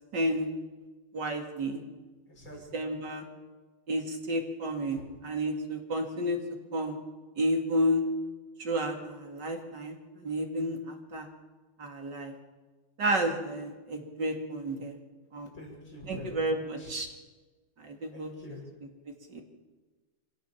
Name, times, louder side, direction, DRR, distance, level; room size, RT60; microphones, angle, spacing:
voice 1, 0.1-0.5 1.1-1.8 2.7-3.2 3.9-6.4 6.7-7.0 7.4-8.0 8.6-11.3 11.8-12.3 13.0-14.9 15.3-15.5 16.1-17.1 17.8-18.3 19.3-19.4, equal, 50° right, 3 dB, 3.2 m, -31 dB
voice 2, 2.3-2.8 15.5-16.9 18.1-18.7, left 1 dB, 60° left, -2 dB, 7.6 m, -45 dB
25.0 x 17.5 x 7.3 m, 1.3 s
omnidirectional pair, 2.4 m